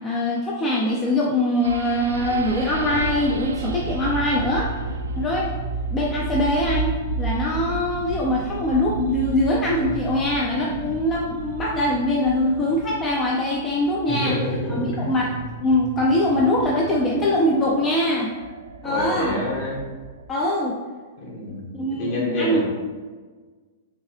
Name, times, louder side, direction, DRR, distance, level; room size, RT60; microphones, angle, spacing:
voice 1, 0.0-4.7 5.2-5.5 5.9-6.9 7.2-14.4 14.7-15.3 15.6-18.3 18.8-19.4 20.3-20.8 21.5-22.6, left 1 dB, 20° left, -3 dB, 0.5 m, -22 dB
sound 1, 1.6-20.3, right 4 dB, 75° right, 0.3 m, -32 dB
voice 2, 14.1-15.1 18.8-19.8 21.2-21.7 22.0-22.6, left 1 dB, 50° left, -4 dB, 1.5 m, -27 dB
3.6 x 2.8 x 3.2 m, 1.4 s
hypercardioid pair, 110°, 0 cm